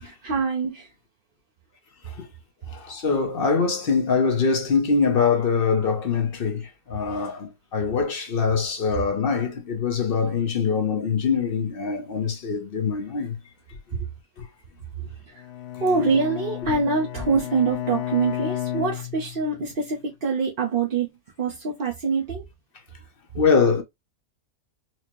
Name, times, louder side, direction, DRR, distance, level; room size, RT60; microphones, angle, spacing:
voice 1, 0.0-0.9 8.6-8.7 15.3-15.4 15.8-21.1 21.4-22.4, right 4 dB, 45° right, 0.8 m, -25 dB
voice 2, 2.7-13.3 23.3-23.8, left 5 dB, 50° left, 0.8 m, -23 dB
Bowed string instrument, 15.4-19.7, left 12 dB, 70° left, 1.2 m, -32 dB
4.4 x 2.1 x 2.9 m
omnidirectional pair, 1.5 m